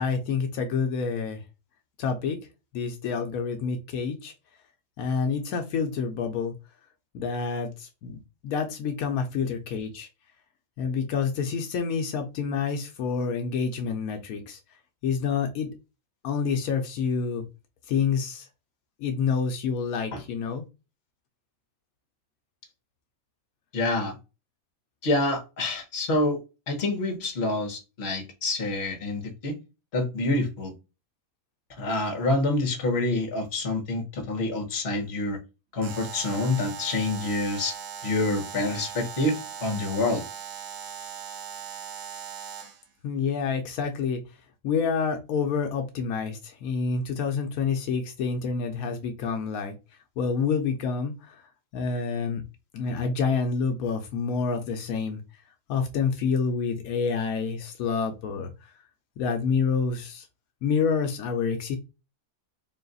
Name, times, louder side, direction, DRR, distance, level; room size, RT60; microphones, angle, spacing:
voice 1, 0.0-1.4 2.0-2.4 2.7-4.3 5.0-6.5 7.1-8.2 8.4-10.1 10.8-14.6 15.0-15.7 16.2-17.4 17.9-18.5 19.0-20.6 43.0-44.2 44.6-49.7 50.2-51.3 51.7-52.4 52.7-55.2 55.7-58.5 59.2-60.2 60.6-61.8, left 5 dB, 80° left, 1.1 m, -28 dB
voice 2, 23.7-24.1 25.0-26.4 26.7-29.5 29.9-30.7 31.8-35.4 35.7-37.7 38.0-39.4 39.6-40.2, left 2 dB, 50° left, 1.2 m, -27 dB
Alarm, 35.8-42.8, right 8 dB, 75° right, 1.2 m, -39 dB
3.9 x 2.4 x 3.8 m
omnidirectional pair, 1.5 m